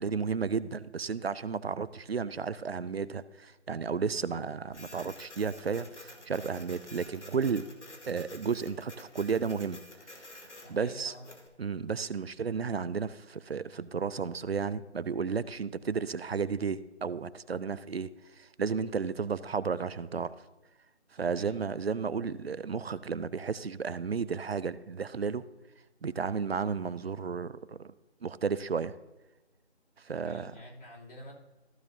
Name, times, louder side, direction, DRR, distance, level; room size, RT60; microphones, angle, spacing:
voice 1, 0.0-7.7 8.1-9.8 10.3-10.4 10.7-11.1 11.6-18.1 18.4-20.4 21.1-25.4 26.0-27.9 28.2-29.0 30.0-30.5, right 5 dB, 60° right, 17 dB, 0.5 m, -33 dB
Printer, 4.7-11.5, left 2 dB, 90° left, 2.1 m, -50 dB
voice 2, 10.6-11.3 21.2-21.6 30.1-31.3, left 1 dB, 50° left, -3 dB, 3.0 m, -48 dB
14.5 x 6.9 x 2.7 m, 1.1 s
figure-of-eight pair, 165°, 34 cm